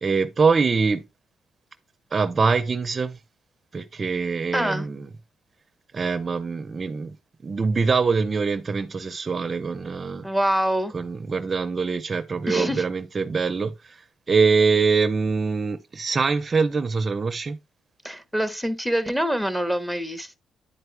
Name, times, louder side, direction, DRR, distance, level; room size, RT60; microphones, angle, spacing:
voice 1, 0.0-1.0 2.1-3.2 3.7-5.1 5.9-7.1 7.4-10.2 10.9-13.7 14.3-17.6, right 4 dB, 35° right, 0.5 m, -23 dB
voice 2, 4.5-4.9 10.2-10.9 12.5-12.8 18.0-20.4, equal, 5° left, 0.9 m, -25 dB
10.0 x 4.6 x 3.2 m
cardioid pair, 90°, 0 cm